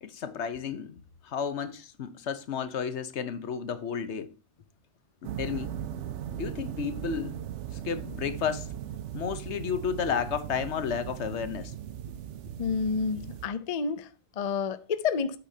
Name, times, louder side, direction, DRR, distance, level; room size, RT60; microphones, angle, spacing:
voice 1, 0.0-4.3 5.2-5.7 6.3-7.4 7.8-8.7 9.1-11.7, left 7 dB, 70° left, 1.1 m, -32 dB
sound 1, 5.2-13.5, right 10 dB, 80° right, 0.9 m, -38 dB
voice 2, 12.6-15.4, left 5 dB, 45° left, 0.6 m, -30 dB
8.6 x 8.3 x 2.7 m
omnidirectional pair, 1.2 m